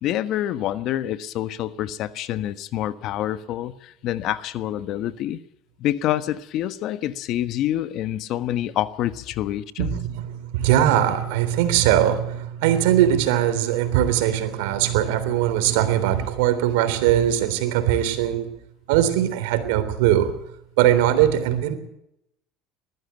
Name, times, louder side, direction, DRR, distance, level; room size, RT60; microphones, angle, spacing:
voice 1, 0.0-5.4 5.8-10.0, left 12 dB, 55° left, 1.3 m, -27 dB
voice 2, 9.8-18.5 18.9-20.3 20.8-21.7, right 11 dB, 80° right, 3.5 m, -20 dB
20.5 x 14.0 x 9.3 m
supercardioid pair, 115°, 0 cm